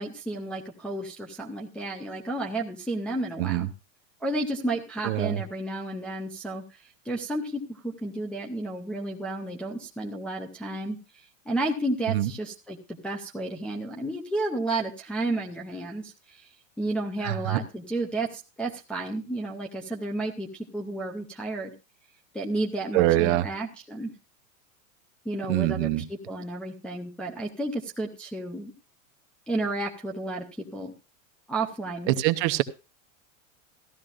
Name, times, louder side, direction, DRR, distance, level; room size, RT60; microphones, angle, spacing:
voice 1, 0.0-3.7 4.2-16.5 16.8-21.7 22.3-24.1 25.2-28.7 29.5-30.9 31.5-32.1, right 2 dB, 5° left, -3 dB, 0.5 m, -32 dB
voice 2, 5.0-5.4 12.1-12.3 17.2-17.6 22.9-23.4 25.5-26.0 32.1-32.6, right 16 dB, 40° right, 9 dB, 0.8 m, -24 dB
15.0 x 12.5 x 2.5 m, 0.30 s
supercardioid pair, 160°, 41 cm